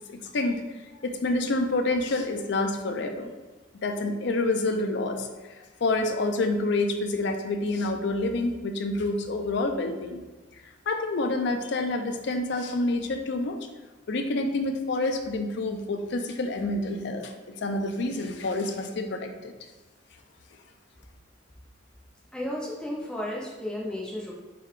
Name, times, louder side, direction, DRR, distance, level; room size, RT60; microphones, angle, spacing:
voice 1, 0.1-0.6 1.0-3.3 3.7-10.2 10.9-13.6 14.1-19.5, left 2 dB, 60° left, 5 dB, 0.4 m, -28 dB
voice 2, 22.3-24.3, left 1 dB, 5° left, -4 dB, 0.4 m, -33 dB
3.8 x 3.2 x 3.1 m, 1.2 s
head